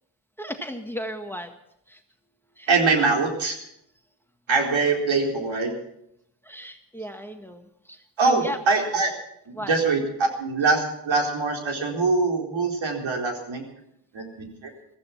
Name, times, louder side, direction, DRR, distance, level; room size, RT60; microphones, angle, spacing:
voice 1, 0.4-1.5 1.9-2.0 2.6-2.7 6.4-8.6 9.5-9.7, equal, 5° left, 6 dB, 1.7 m, -35 dB
voice 2, 2.7-3.6 4.5-5.7 8.2-9.1 9.5-13.6 14.1-14.7, right 3 dB, 65° right, 1 dB, 4.3 m, -23 dB
15.5 x 14.5 x 6.0 m, 0.77 s
cardioid pair, 65°, 49 cm